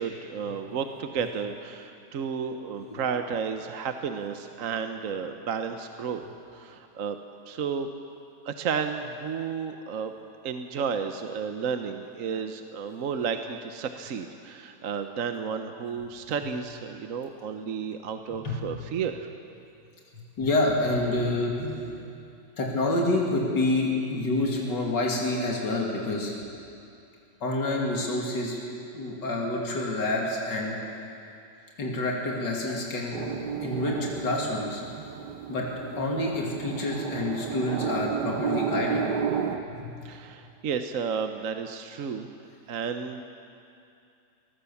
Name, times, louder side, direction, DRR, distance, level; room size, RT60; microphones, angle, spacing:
voice 1, 0.0-6.2 6.5-7.2 7.5-7.9 8.4-10.1 10.4-19.3 40.0-42.3 42.7-43.2, right 6 dB, 55° right, 7 dB, 1.1 m, -32 dB
voice 2, 20.4-21.9 22.6-26.3 27.4-28.6 28.9-30.8 31.8-33.2 33.6-34.8 35.5-35.7 36.0-39.0 39.7-39.9, left 2 dB, 70° left, -2 dB, 3.2 m, -28 dB
sound 1, 33.1-39.6, right 7 dB, 70° right, 1.7 m, -32 dB
23.0 x 19.0 x 7.2 m, 2.6 s
omnidirectional pair, 1.9 m